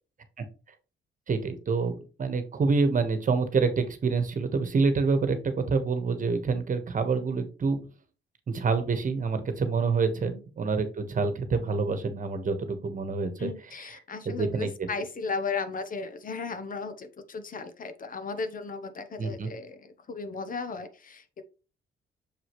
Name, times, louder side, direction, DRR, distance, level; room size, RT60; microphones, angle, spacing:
voice 1, 1.3-7.8 8.5-13.5 14.2-14.7 19.2-19.5, right 4 dB, 40° right, 8 dB, 1.3 m, -27 dB
voice 2, 13.4-21.4, left 4 dB, 45° left, 10 dB, 1.0 m, -36 dB
6.8 x 5.0 x 3.1 m, 0.34 s
cardioid pair, 90°, 20 cm